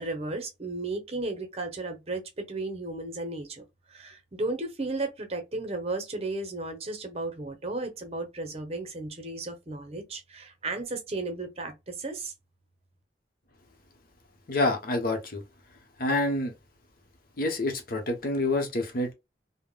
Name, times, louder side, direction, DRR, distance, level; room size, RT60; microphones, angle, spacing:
voice 1, 0.0-3.6 3.9-12.3, right 2 dB, 35° right, 0.8 m, -34 dB
voice 2, 14.5-15.4 16.0-16.5 17.4-19.1, left 2 dB, 55° left, 0.8 m, -27 dB
3.4 x 2.1 x 2.2 m
head